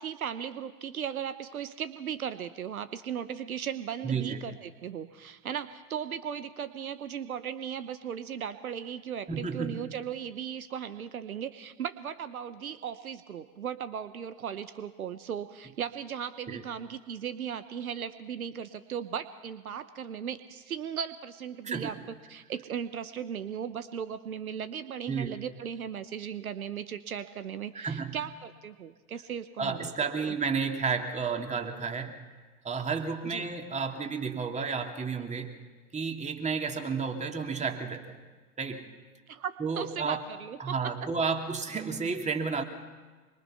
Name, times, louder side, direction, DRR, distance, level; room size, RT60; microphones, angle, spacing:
voice 1, 0.0-29.9 30.3-30.4 33.2-33.5 39.3-40.9, right 8 dB, 70° right, 13 dB, 1.1 m, -37 dB
voice 2, 4.0-4.4 9.3-9.8 16.5-16.6 21.6-21.9 25.1-25.3 27.7-28.2 29.6-32.2 32.6-35.6 35.9-38.2 38.6-38.8 39.6-40.2 40.6-42.6, right 5 dB, 15° right, 4 dB, 2.9 m, -32 dB
25.5 x 23.5 x 5.8 m, 1.4 s
figure-of-eight pair, 85°, 44 cm